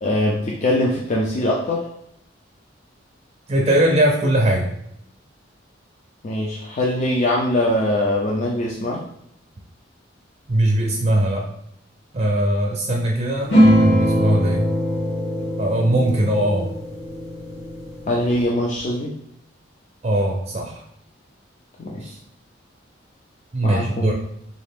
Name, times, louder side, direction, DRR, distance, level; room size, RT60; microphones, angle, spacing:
voice 1, 0.0-1.8 6.2-9.0 18.1-19.1 21.8-22.0 23.6-24.1, left 1 dB, 40° left, -3 dB, 0.5 m, -22 dB
voice 2, 3.5-4.7 10.5-11.5 12.1-14.6 15.6-16.7 20.0-20.8 22.0-22.2 23.5-24.1, right 1 dB, 35° right, 0 dB, 0.5 m, -20 dB
sound 1, 13.5-18.4, equal, 80° left, 1.3 m, -21 dB
3.7 x 2.4 x 3.5 m, 0.74 s
head